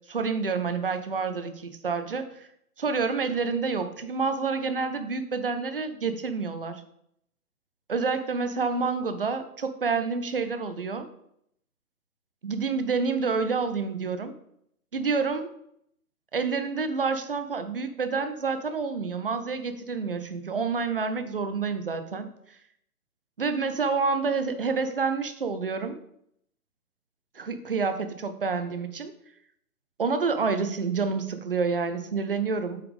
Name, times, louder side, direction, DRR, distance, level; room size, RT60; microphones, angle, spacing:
voice 1, 0.1-2.5 2.8-6.8 7.9-11.1 12.4-14.3 14.9-15.5 16.3-22.3 23.4-26.0 27.3-29.1 30.0-32.8, right 4 dB, 40° right, 9 dB, 0.7 m, -28 dB
8.8 x 5.7 x 3.5 m, 0.72 s
figure-of-eight pair, 140°, 46 cm